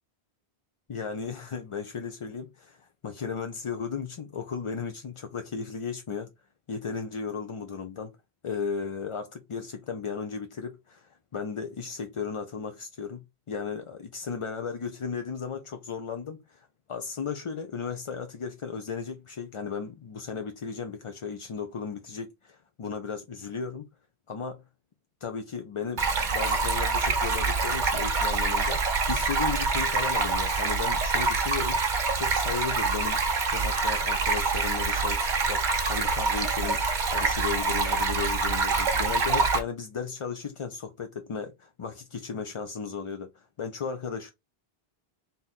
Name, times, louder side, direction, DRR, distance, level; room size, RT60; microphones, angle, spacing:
voice 1, 0.9-6.3 6.7-8.1 8.4-13.2 13.5-23.9 24.3-24.6 25.2-36.8 37.1-44.3, left 5 dB, 45° left, 0.4 m, -35 dB
Stream, 26.0-39.6, right 4 dB, 50° right, 0.9 m, -26 dB
3.6 x 2.7 x 4.1 m
omnidirectional pair, 1.0 m